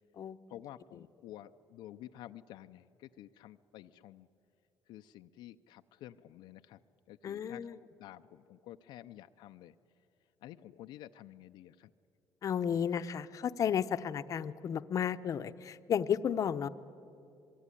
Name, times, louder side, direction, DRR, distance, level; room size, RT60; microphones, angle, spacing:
voice 1, 0.5-4.3 4.9-6.8 7.1-7.7 8.0-9.7 10.4-11.9 12.7-12.8, left 13 dB, 80° left, 7 dB, 0.6 m, -51 dB
voice 2, 7.2-7.8 12.4-16.7, left 8 dB, 45° left, 11 dB, 0.8 m, -33 dB
24.5 x 22.0 x 10.0 m, 2.6 s
cardioid pair, 115°, 8 cm